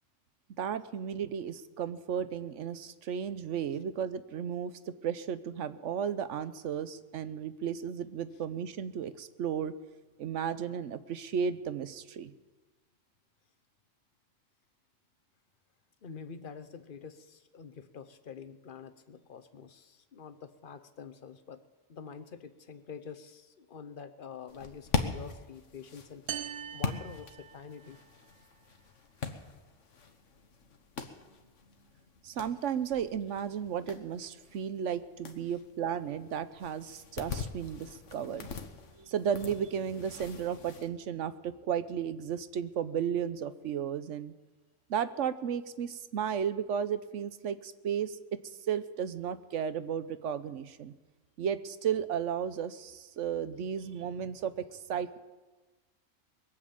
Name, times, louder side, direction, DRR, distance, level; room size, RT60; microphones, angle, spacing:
voice 1, 0.6-9.7 10.2-12.3 32.2-38.5 39.0-44.3 44.9-48.2 48.4-50.9 51.4-55.2, right 8 dB, 70° right, 13 dB, 1.0 m, -34 dB
voice 2, 16.0-21.6 21.9-26.2 26.7-28.0 28.4-28.5 38.4-38.5, left 6 dB, 45° left, 11 dB, 0.9 m, -47 dB
sound 1, 24.5-40.9, left 5 dB, 70° left, 1.5 m, -41 dB
sound 2, 26.3-28.0, right 9 dB, 55° right, 0.7 m, -41 dB
21.5 x 7.4 x 8.6 m, 1.2 s
omnidirectional pair, 1.3 m